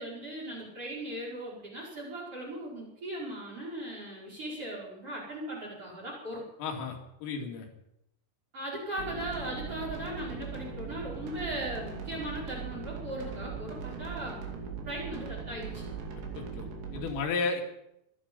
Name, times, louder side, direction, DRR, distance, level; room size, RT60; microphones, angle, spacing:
voice 1, 0.0-6.4 8.5-14.4 14.8-15.8, right 1 dB, 30° right, -4 dB, 5.6 m, -38 dB
voice 2, 6.6-7.7 16.3-17.6, left 4 dB, 85° left, 1 dB, 5.0 m, -33 dB
sound 1, 9.0-17.1, right 5 dB, 75° right, 5.1 m, -40 dB
23.0 x 11.5 x 5.4 m, 0.82 s
omnidirectional pair, 5.7 m